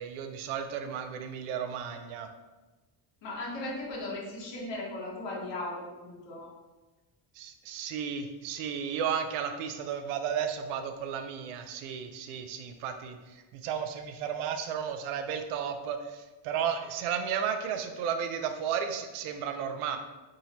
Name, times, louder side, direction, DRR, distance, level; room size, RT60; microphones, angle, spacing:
voice 1, 0.0-2.3 7.4-20.0, right 7 dB, 85° right, 7 dB, 0.6 m, -33 dB
voice 2, 3.2-6.5, left 2 dB, 60° left, -4 dB, 1.3 m, -37 dB
3.7 x 2.7 x 2.9 m, 1.1 s
cardioid pair, 100°, 48 cm